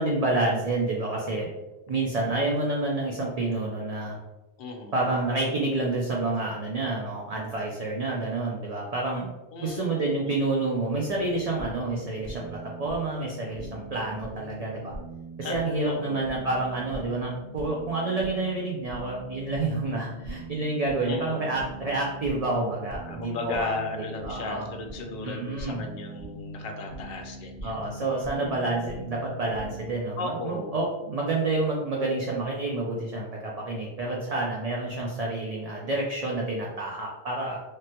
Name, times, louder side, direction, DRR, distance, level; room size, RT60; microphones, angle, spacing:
voice 1, 0.0-1.5 1.9-4.2 4.9-9.3 9.6-14.9 15.4-24.7 25.2-25.8 27.6-37.6, right 2 dB, 55° right, -2 dB, 0.4 m, -29 dB
voice 2, 4.6-5.2 9.5-10.4 15.4-16.3 21.1-21.6 23.0-27.8 30.2-30.7, left 3 dB, 65° left, 3 dB, 0.7 m, -35 dB
sound 1, 11.0-30.0, right 1 dB, 25° right, 0.8 m, -41 dB
3.3 x 2.1 x 2.7 m, 1.0 s
omnidirectional pair, 1.1 m